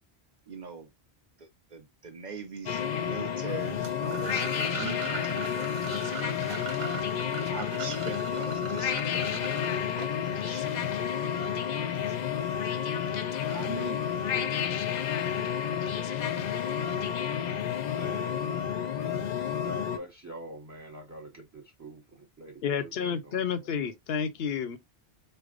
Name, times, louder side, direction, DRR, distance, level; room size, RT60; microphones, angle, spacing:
voice 1, 0.5-0.9 1.4-6.0 6.3-6.4 6.7-7.1 7.5-11.2 11.7-12.6 13.3-15.7, right 4 dB, 45° right, 1.0 m, -43 dB
sound 1, 2.7-20.0, left 8 dB, 55° left, 0.5 m, -30 dB
sound 2, 3.8-10.6, right 7 dB, 75° right, 1.0 m, -41 dB
voice 2, 17.9-18.4 18.9-23.4, right 1 dB, 20° right, 0.8 m, -45 dB
voice 3, 22.6-24.8, left 7 dB, 75° left, 0.9 m, -30 dB
4.1 x 3.3 x 2.4 m
omnidirectional pair, 1.0 m